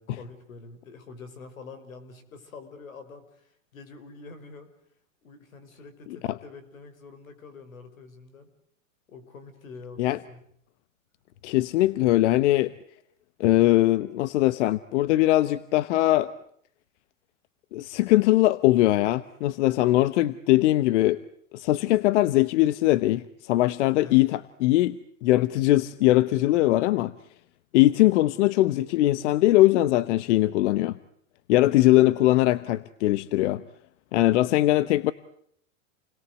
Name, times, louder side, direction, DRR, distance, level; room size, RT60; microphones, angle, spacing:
voice 1, 0.0-4.7 5.2-8.5 9.1-10.4 24.0-24.3, left 4 dB, 85° left, 11 dB, 5.8 m, -46 dB
voice 2, 11.4-12.7 13.4-16.3 17.7-21.2 21.5-27.1 27.7-30.9 31.5-33.6 34.1-35.1, left 16 dB, 60° left, 16 dB, 1.1 m, -21 dB
29.5 x 21.0 x 8.1 m, 0.69 s
hypercardioid pair, 115°, 40 cm